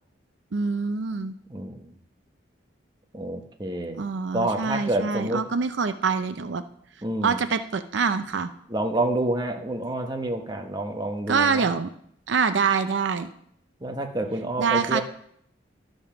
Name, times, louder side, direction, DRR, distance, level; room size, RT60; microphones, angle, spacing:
voice 1, 0.5-1.3 4.0-6.6 7.2-8.5 11.3-11.9 12.3-13.3 14.6-15.0, right 5 dB, 80° right, 10 dB, 0.5 m, -25 dB
voice 2, 1.5-2.0 3.1-4.0 4.3-5.4 7.0-7.4 8.7-11.7 13.8-15.0, right 1 dB, 25° right, 3 dB, 1.0 m, -28 dB
12.5 x 5.3 x 5.9 m, 0.68 s
head